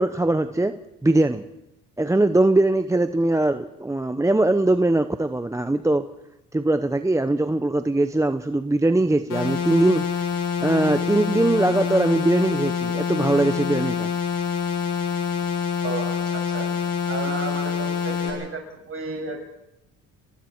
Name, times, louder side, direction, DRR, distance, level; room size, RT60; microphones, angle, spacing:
voice 1, 0.0-1.4 2.0-6.1 6.5-10.1 10.6-14.1, right 2 dB, 10° right, 0.8 m, -21 dB
sound 1, 9.3-18.3, left 7 dB, 65° left, 7.6 m, -26 dB
voice 2, 15.8-16.8 17.1-19.4, right 4 dB, 40° right, 7.0 m, -33 dB
29.5 x 20.0 x 4.6 m
cardioid pair, 90°, 35 cm